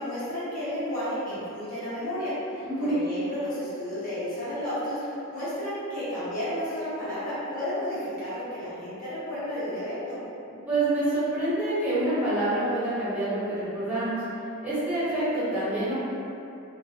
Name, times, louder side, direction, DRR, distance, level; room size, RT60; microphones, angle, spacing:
voice 1, 0.0-10.2, left 1 dB, 40° left, -13 dB, 1.1 m, -32 dB
voice 2, 2.6-3.0 10.7-14.2 14.6-16.1, right 1 dB, 5° right, -13 dB, 0.9 m, -27 dB
2.8 x 2.3 x 2.7 m, 2.7 s
head